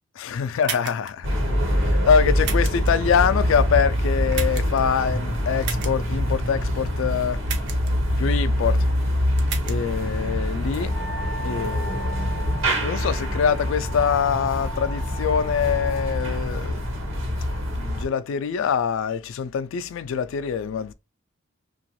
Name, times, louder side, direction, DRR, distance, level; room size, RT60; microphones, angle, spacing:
voice 1, 0.2-1.3 1.8-7.4 8.2-8.9 9.7-11.0 11.4-12.2 12.8-16.8 17.7-20.9, left 7 dB, 70° left, 0.3 m, -24 dB
sound 1, 0.6-1.1 2.4-2.9 4.3-4.8 5.6-5.9 7.5-7.9 9.4-9.8, right 7 dB, 55° right, 0.5 m, -32 dB
sound 2, 1.2-18.0, equal, 75° right, 1.1 m, -25 dB
Wind instrument woodwind instrument, 10.8-16.4, equal, 5° left, 0.5 m, -38 dB
2.9 x 2.3 x 3.0 m
head